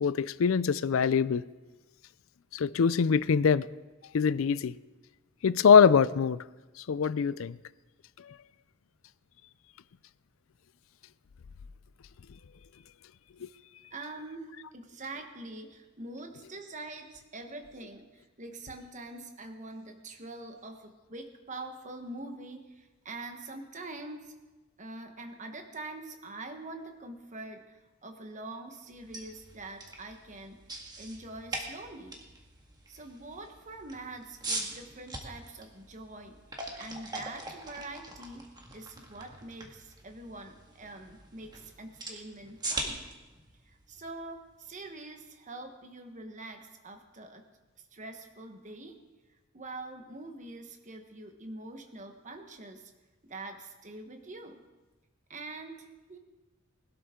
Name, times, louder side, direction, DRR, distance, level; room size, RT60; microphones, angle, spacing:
voice 1, 0.0-1.4 2.5-3.7 4.1-4.8 5.4-6.4 6.9-7.6 13.4-13.5, left 6 dB, 70° left, 0.4 m, -23 dB
voice 2, 13.9-24.3 24.8-30.6 31.0-32.2 32.9-36.4 36.8-38.4 38.7-43.1 43.6-47.4 47.8-49.0 49.5-52.9 53.2-54.6 55.3-56.2, right 2 dB, 35° right, 1.2 m, -44 dB
sound 1, 28.9-44.8, right 2 dB, 20° right, 1.7 m, -42 dB
20.5 x 12.5 x 3.7 m
head